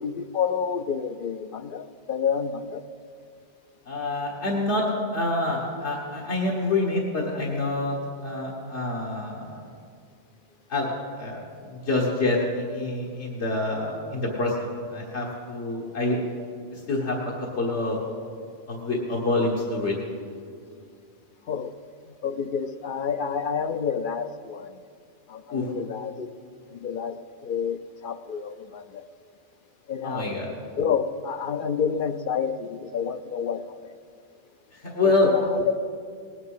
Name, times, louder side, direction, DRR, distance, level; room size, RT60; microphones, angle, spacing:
voice 1, 0.0-2.8 21.5-21.7 22.2-24.8 25.3-26.3 26.7-29.0 29.9-30.4 30.8-33.9 35.0-35.6, left 6 dB, 55° left, 11 dB, 0.6 m, -29 dB
voice 2, 3.9-4.9 5.1-9.6 10.7-11.4 11.7-16.2 16.7-18.0 18.7-19.9 25.5-25.7 30.0-30.5 34.8-35.3, left 2 dB, 75° left, -4 dB, 1.9 m, -27 dB
19.0 x 9.8 x 5.6 m, 2.2 s
omnidirectional pair, 1.2 m